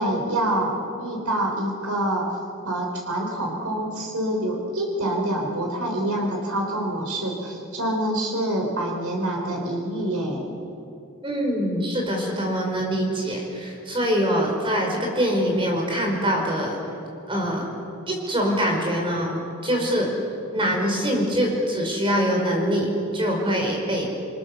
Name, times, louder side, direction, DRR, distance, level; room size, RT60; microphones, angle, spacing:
voice 1, 0.0-2.4 2.6-10.5, right 1 dB, 85° right, 0 dB, 4.2 m, -26 dB
voice 2, 11.2-16.8 17.3-17.7 18.1-19.4 19.6-20.1 20.5-24.0, equal, 25° right, 1 dB, 5.5 m, -24 dB
28.5 x 23.5 x 7.1 m, 2.7 s
head